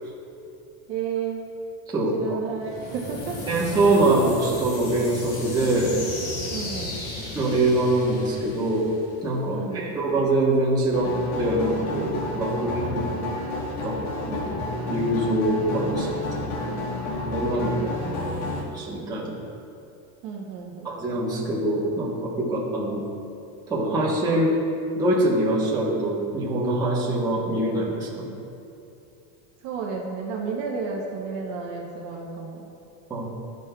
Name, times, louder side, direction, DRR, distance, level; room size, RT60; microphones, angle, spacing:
voice 1, 0.9-1.5 2.1-3.4 6.5-7.0 9.5-10.0 16.7-17.0 17.6-18.6 20.2-20.9 29.6-32.7, right 5 dB, 45° right, -1 dB, 0.8 m, -32 dB
voice 2, 1.9-2.4 3.5-5.9 7.3-8.9 9.2-13.1 13.8-14.0 14.3-16.5 17.3-17.8 18.7-19.3 20.8-23.0 23.7-24.6 25.0-28.3 33.1-33.2, right 1 dB, 10° right, -7 dB, 1.0 m, -24 dB
sound 1, 2.6-9.5, left 2 dB, 45° left, 1.4 m, -35 dB
sound 2, 10.9-18.6, left 2 dB, 85° left, 1.6 m, -30 dB
12.5 x 5.2 x 2.3 m, 2.7 s
cardioid pair, 170°, 41 cm